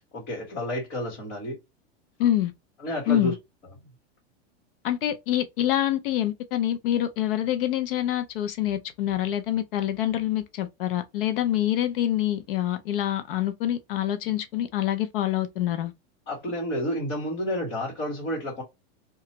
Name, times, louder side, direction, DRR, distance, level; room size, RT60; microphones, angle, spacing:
voice 1, 0.0-1.6 2.8-3.3 16.3-18.6, equal, 30° left, 1.3 m, -30 dB
voice 2, 2.2-2.5 3.1-3.3 4.8-15.9, left 12 dB, 55° left, 0.6 m, -26 dB
2.9 x 2.3 x 2.9 m
supercardioid pair, 165°, 33 cm